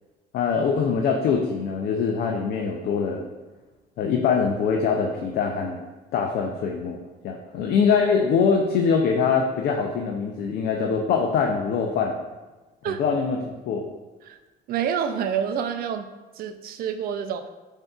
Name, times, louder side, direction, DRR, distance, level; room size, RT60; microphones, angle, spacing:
voice 1, 0.3-3.2 4.0-5.8 6.1-12.2 12.8-13.4 13.7-13.9, left 6 dB, 65° left, 2 dB, 0.5 m, -23 dB
voice 2, 14.7-16.1 16.4-17.5, right 8 dB, 60° right, 7 dB, 0.4 m, -27 dB
7.2 x 2.7 x 2.3 m, 1.2 s
cardioid pair, 110°, 17 cm